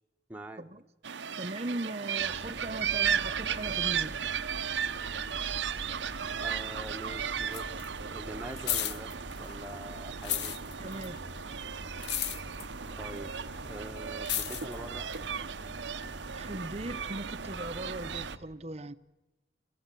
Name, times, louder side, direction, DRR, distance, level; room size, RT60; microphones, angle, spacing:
voice 1, 0.3-0.6 6.4-9.1 9.4-10.5 13.0-13.3 13.7-15.1, right 1 dB, 10° right, 1.2 m, -44 dB
sound 1, 1.0-18.4, right 8 dB, 90° right, 0.8 m, -35 dB
voice 2, 1.4-4.2 10.8-11.2 16.3-18.9, right 2 dB, 35° right, 0.8 m, -38 dB
sound 2, 2.2-18.4, equal, 55° left, 7.1 m, -46 dB
sound 3, 6.0-7.0 7.3-9.8 10.1-16.1 16.7-16.8, left 11 dB, 70° left, 1.0 m, -36 dB
28.0 x 15.0 x 9.2 m
head